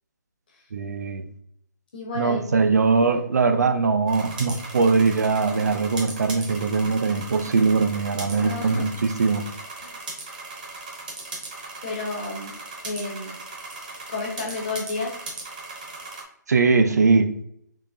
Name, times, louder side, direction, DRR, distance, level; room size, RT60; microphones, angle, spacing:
voice 1, 0.7-1.2 2.2-9.5 16.5-17.3, right 4 dB, 60° right, 7 dB, 0.4 m, -21 dB
voice 2, 1.9-2.5 8.4-8.9 9.8-10.0 11.8-12.5 12.8-13.4 14.1-15.2, left 3 dB, 30° left, -1 dB, 0.9 m, -31 dB
sound 1, 4.1-16.2, right 3 dB, 25° right, 0.7 m, -38 dB
3.7 x 2.9 x 2.6 m, 0.68 s
hypercardioid pair, 175°, 10 cm